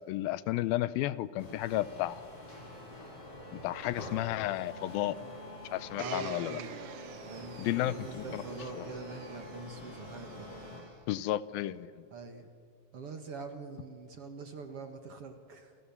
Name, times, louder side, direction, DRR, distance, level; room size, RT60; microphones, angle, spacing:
voice 1, 0.1-2.2 3.5-5.2 5.7-6.6 7.6-8.4 8.8-8.9 11.1-11.9, left 15 dB, 85° left, 17 dB, 2.6 m, -32 dB
sound 1, 1.4-10.8, left 1 dB, 40° left, 8.1 m, -46 dB
voice 2, 6.0-6.8 7.2-7.6 7.9-10.5 12.1-12.5 12.9-15.7, right 4 dB, 50° right, 6 dB, 2.1 m, -44 dB
Domestic sounds home sounds, 6.0-10.8 11.6-11.7, right 8 dB, 65° right, 2.4 m, -48 dB
29.5 x 28.0 x 7.2 m, 2.4 s
omnidirectional pair, 4.2 m